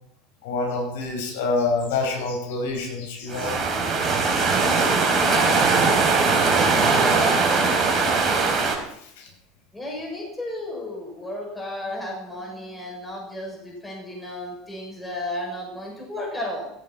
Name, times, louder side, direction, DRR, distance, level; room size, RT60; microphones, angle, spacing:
voice 1, 0.4-3.6 9.2-9.3, left 3 dB, 65° left, 3 dB, 5.7 m, -26 dB
sound 1, 3.3-8.8, right 4 dB, 25° right, 4.9 m, -20 dB
voice 2, 5.2-5.7 6.7-8.6 9.7-16.7, left 1 dB, 10° left, -2 dB, 7.2 m, -33 dB
16.5 x 16.0 x 4.5 m, 0.76 s
figure-of-eight pair, 75°, 0 cm